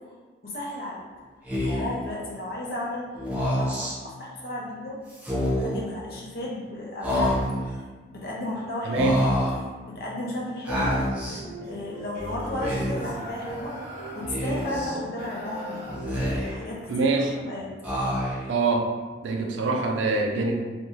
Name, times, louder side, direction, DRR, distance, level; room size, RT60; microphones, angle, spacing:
voice 1, 0.4-1.0 1.6-3.1 3.6-5.0 5.6-7.8 8.1-9.0 9.5-11.2 11.6-13.9 14.1-17.1 17.5-17.7 18.0-18.1, left 1 dB, 50° left, -4 dB, 0.6 m, -34 dB
Speech, 1.5-2.0 3.2-3.9 5.1-5.8 7.0-7.7 8.9-9.6 10.7-11.4 12.4-13.1 14.3-14.9 15.9-16.7 17.8-18.5, equal, 10° right, 0.4 m, -27 dB
voice 2, 8.9-9.2 16.9-17.3 18.5-18.9 19.2-20.7, right 3 dB, 90° right, 2 dB, 0.4 m, -24 dB
sound 1, 11.2-16.5, right 1 dB, 30° right, 0.9 m, -36 dB
2.5 x 2.2 x 3.0 m, 1.4 s
head